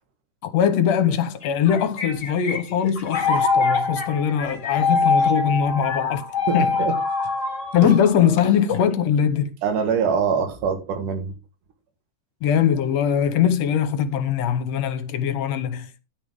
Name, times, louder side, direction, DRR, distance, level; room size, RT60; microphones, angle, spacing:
voice 1, 0.5-6.2 6.5-6.7 7.7-9.5 12.4-16.0, left 8 dB, 65° left, 2.0 m, -21 dB
School Bell, 1.4-9.0, left 4 dB, 35° left, 1.3 m, -24 dB
voice 2, 6.5-7.0 7.8-7.9 9.6-11.3, right 6 dB, 85° right, 3.1 m, -23 dB
9.8 x 9.7 x 3.6 m
omnidirectional pair, 3.6 m